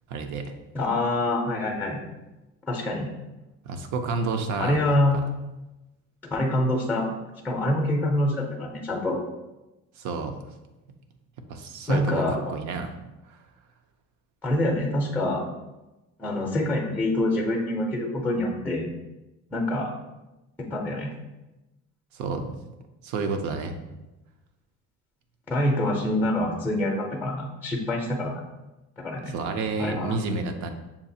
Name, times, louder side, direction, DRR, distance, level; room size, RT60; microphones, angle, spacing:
voice 1, 0.1-0.5 3.7-4.8 5.1-5.2 10.0-10.4 11.5-13.0 13.3-13.4 22.1-22.6 23.0-23.7 29.3-30.7, right 4 dB, 75° right, 6 dB, 0.6 m, -30 dB
voice 2, 0.7-2.0 2.7-3.1 4.6-5.2 6.3-7.1 7.4-9.2 11.9-12.4 14.4-15.4 16.2-18.9 19.5-19.9 20.6-21.1 25.5-28.4 29.0-29.3 29.8-30.1, left 1 dB, 5° left, 0 dB, 0.5 m, -25 dB
6.9 x 2.4 x 2.7 m, 1.0 s
cardioid pair, 145°, 29 cm